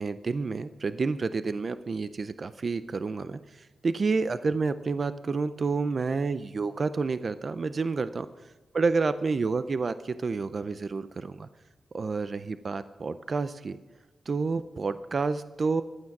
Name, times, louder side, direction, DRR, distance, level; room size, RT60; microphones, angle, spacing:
voice 1, 0.0-8.3 8.7-11.5 11.9-13.8 14.3-15.8, right 4 dB, 40° right, 12 dB, 0.4 m, -29 dB
15.5 x 11.5 x 5.9 m, 1.2 s
wide cardioid pair, 145°, 0 cm